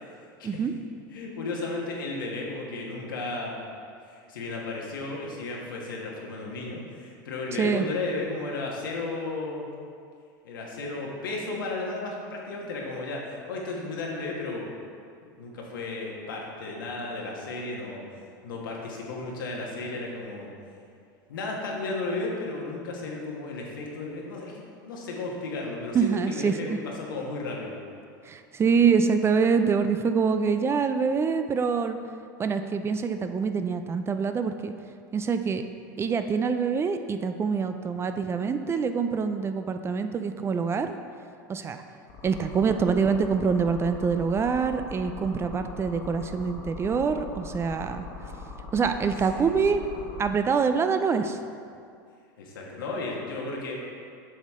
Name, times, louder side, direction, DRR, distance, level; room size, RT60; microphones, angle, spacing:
voice 1, 1.1-3.6 4.0-9.7 10.4-13.2 13.5-14.7 15.3-18.0 18.4-20.5 21.3-27.8 37.8-37.9 49.3-49.7 52.4-53.8, left 3 dB, 90° left, -2 dB, 1.5 m, -34 dB
voice 2, 7.5-7.9 25.9-26.8 28.2-32.0 32.4-34.7 35.1-35.6 36.0-41.0 41.5-41.8 42.2-48.1 48.7-49.8 50.2-51.4, right 5 dB, 25° right, 8 dB, 0.4 m, -25 dB
sound 1, 42.1-50.3, left 4 dB, 55° left, 1.3 m, -41 dB
7.8 x 6.4 x 3.6 m, 2.3 s
hypercardioid pair, 105°, 11 cm